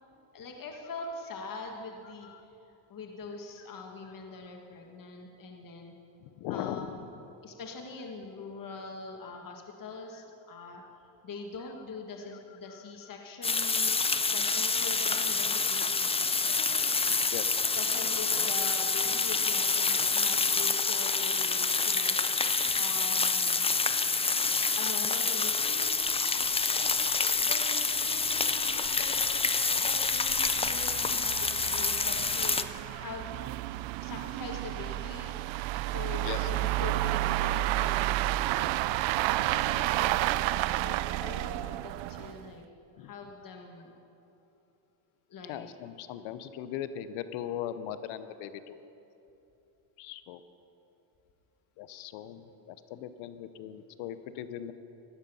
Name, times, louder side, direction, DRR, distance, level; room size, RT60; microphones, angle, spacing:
voice 1, 0.3-2.3 2.7-6.0 6.5-7.0 7.4-17.3 17.7-22.2 22.8-23.7 24.8-26.0 26.6-26.9 27.2-32.6 33.0-33.4 34.0-35.4 35.9-38.2 38.5-40.4 40.8-42.6 43.0-43.9 45.3-45.7 54.3-54.4, left 4 dB, 40° left, 2 dB, 1.7 m, -43 dB
voice 2, 6.2-6.9 12.7-12.8 17.3-17.7 21.0-21.1 29.5-29.7 32.9-33.1 36.2-36.8 43.0-43.1 45.5-48.8 50.0-50.4 51.8-54.7, left 10 dB, 80° left, 12 dB, 0.9 m, -39 dB
sound 1, 13.4-32.6, left 4 dB, 10° left, 0.5 m, -27 dB
Auto with fadeout, 26.1-26.2 26.4-26.5 27.0-27.1 27.4-27.5 28.1-42.5, right 16 dB, 70° right, 0.5 m, -31 dB
17.0 x 11.5 x 5.5 m, 2.9 s
supercardioid pair, 90°, 48 cm